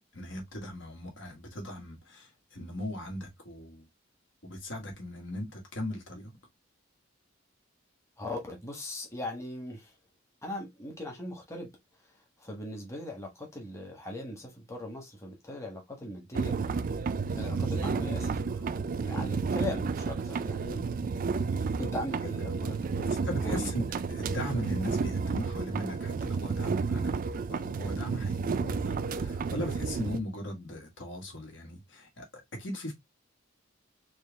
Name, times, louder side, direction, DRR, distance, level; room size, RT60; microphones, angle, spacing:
voice 1, 0.1-3.8 4.4-6.3 19.2-19.3 23.2-27.2 27.5-32.9, equal, 70° left, 1.7 m, -38 dB
voice 2, 8.2-9.9 10.4-11.7 12.4-16.5 17.3-18.7 19.0-20.9 21.8-23.0 23.4-23.7, left 1 dB, 15° left, 1.2 m, -39 dB
sound 1, 16.3-30.2, right 5 dB, 45° right, 0.4 m, -31 dB
4.5 x 2.4 x 3.4 m
head